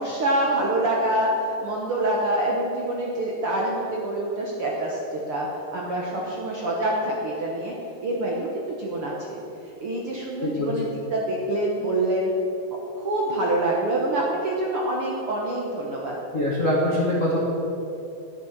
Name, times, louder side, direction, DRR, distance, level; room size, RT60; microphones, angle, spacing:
voice 1, 0.0-7.7 8.0-9.4 9.8-12.3 12.9-16.2, right 1 dB, 60° right, -3 dB, 1.5 m, -26 dB
voice 2, 10.4-10.7 16.3-17.4, left 1 dB, 45° left, -5 dB, 1.0 m, -23 dB
12.0 x 8.7 x 5.9 m, 3.0 s
omnidirectional pair, 3.9 m